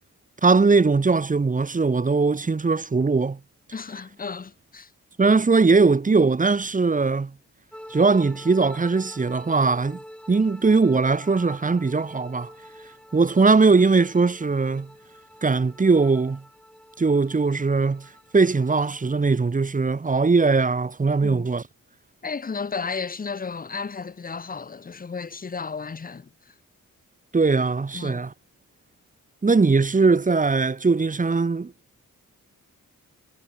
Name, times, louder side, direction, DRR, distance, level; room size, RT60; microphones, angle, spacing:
voice 1, 0.4-3.4 5.2-7.3 7.9-10.0 10.3-12.5 13.1-14.9 15.4-16.4 17.0-18.1 18.3-21.6 27.3-28.3 29.4-31.7, right 4 dB, 25° right, 0.8 m, -20 dB
voice 2, 3.7-4.9 21.2-21.5 22.2-26.5 27.9-28.2, left 5 dB, 25° left, 0.7 m, -33 dB
sound 1, 7.7-19.4, equal, 5° left, 6.0 m, -47 dB
cardioid pair, 55°, 35 cm